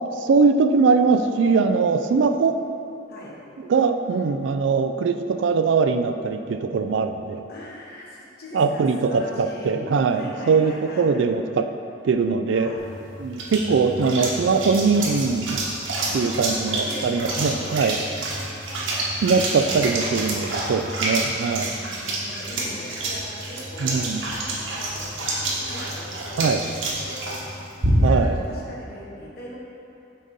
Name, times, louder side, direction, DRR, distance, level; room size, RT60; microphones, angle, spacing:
voice 1, 0.2-2.5 3.7-7.4 8.5-11.7 12.0-12.7 13.2-15.6 16.1-18.0 19.2-21.8 23.8-24.2 26.4-26.6 28.0-28.4, right 4 dB, 65° right, 8 dB, 0.3 m, -21 dB
voice 2, 7.5-9.8 10.1-11.1 12.5-12.9 16.1-18.5 21.5-29.6, left 1 dB, 55° left, -4 dB, 1.1 m, -40 dB
sound 1, 12.8-28.3, right 2 dB, 90° right, 1.4 m, -28 dB
6.4 x 4.0 x 5.2 m, 2.8 s
head